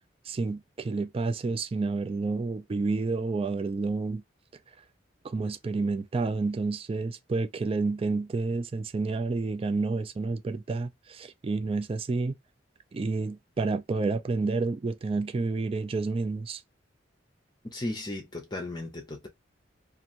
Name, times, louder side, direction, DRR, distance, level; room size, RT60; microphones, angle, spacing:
voice 1, 0.2-4.2 5.2-12.4 12.9-16.6, right 3 dB, 30° right, 0.3 m, -29 dB
voice 2, 17.7-19.3, left 1 dB, 25° left, 0.6 m, -35 dB
2.8 x 2.6 x 2.5 m
head